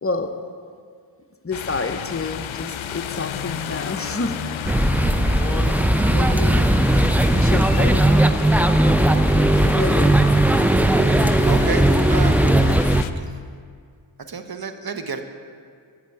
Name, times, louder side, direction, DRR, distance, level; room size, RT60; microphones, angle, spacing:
voice 1, 0.0-0.4 1.4-4.4 5.4-5.8 6.1-6.7 7.3-8.1 9.8-10.2, left 3 dB, 30° left, 7 dB, 0.7 m, -29 dB
sound 1, 1.5-13.1, left 9 dB, 75° left, 0.6 m, -32 dB
sound 2, 4.6-13.0, right 1 dB, 5° right, 0.3 m, -17 dB
voice 2, 11.5-12.8 13.2-13.3 14.3-15.3, right 5 dB, 50° right, 7 dB, 0.9 m, -31 dB
10.5 x 8.4 x 4.6 m, 2.1 s
cardioid pair, 40°, 47 cm